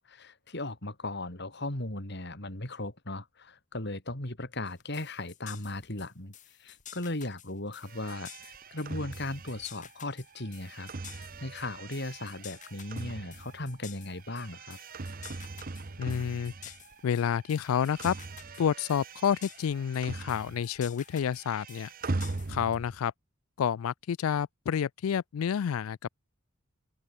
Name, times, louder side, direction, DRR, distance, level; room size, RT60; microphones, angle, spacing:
voice 1, 0.0-6.3 6.6-14.8, left 2 dB, 55° left, 3.7 m, -37 dB
sound 1, 4.7-22.8, left 10 dB, 35° left, 1.9 m, -51 dB
sound 2, 7.8-17.1 17.4-20.8 21.1-23.0, right 3 dB, 45° right, 0.8 m, -41 dB
voice 2, 16.0-16.5 17.0-18.2 18.6-21.9 22.5-23.1 23.6-26.1, left 8 dB, 85° left, 0.4 m, -29 dB
open air
head